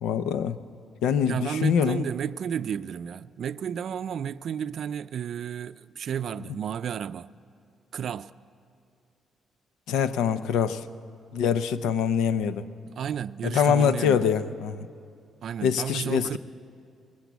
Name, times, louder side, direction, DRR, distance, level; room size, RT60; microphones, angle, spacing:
voice 1, 0.0-0.6 1.0-2.1 9.9-10.8 11.3-12.6 13.4-14.9 15.6-16.4, left 7 dB, 90° left, 0.7 m, -24 dB
voice 2, 1.3-7.3 7.9-8.3 12.9-14.3 15.4-16.4, right 8 dB, 60° right, 0.4 m, -32 dB
20.0 x 18.0 x 8.2 m
cardioid pair, 90°, 0 cm